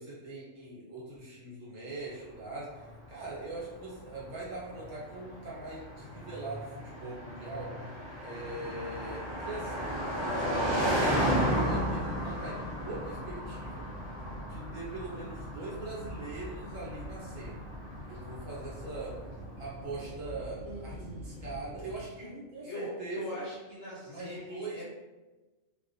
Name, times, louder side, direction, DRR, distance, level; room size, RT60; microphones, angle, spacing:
voice 1, 0.0-7.8 8.2-10.7 11.2-13.9 14.4-17.7 18.0-19.2 19.6-23.4 24.1-24.8, right 2 dB, 75° right, -6 dB, 1.3 m, -42 dB
Car passing by, 2.8-19.2, equal, 30° right, 0.6 m, -34 dB
sound 1, 10.1-22.0, equal, 60° right, 0.9 m, -45 dB
voice 2, 20.6-21.4 22.6-24.8, equal, 65° left, -5 dB, 0.7 m, -42 dB
2.5 x 2.1 x 2.6 m, 1.2 s
omnidirectional pair, 1.3 m